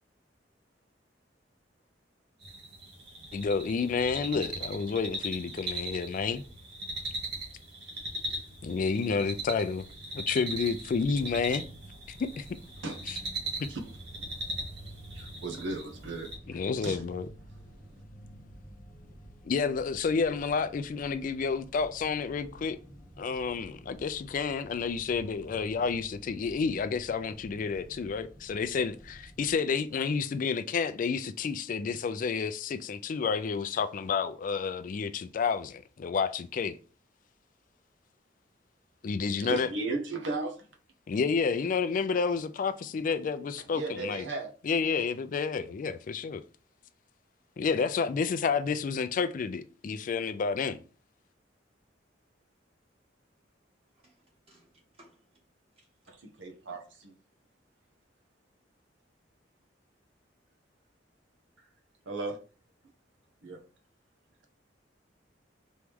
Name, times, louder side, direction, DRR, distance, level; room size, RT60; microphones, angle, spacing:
sound 1, 2.4-16.4, right 1 dB, 65° right, 1.7 m, -39 dB
voice 1, 3.3-6.4 8.6-9.8 10.1-11.7 12.4-12.5 13.1-13.2 13.6-13.7 16.5-17.3 19.4-22.8 23.2-36.8 39.0-39.7 41.1-44.3 44.6-46.4 47.6-50.8, left 5 dB, 45° left, 0.3 m, -30 dB
sound 2, 10.5-29.5, equal, 10° right, 1.3 m, -51 dB
voice 2, 15.1-17.0 39.4-40.7 43.7-44.5 56.1-57.1 62.1-62.4 63.4-63.6, right 3 dB, 85° right, 0.9 m, -36 dB
voice 3, 54.0-55.4 55.8-55.9 56.4-56.5, right 1 dB, 35° right, 1.5 m, -61 dB
4.5 x 3.1 x 3.5 m
head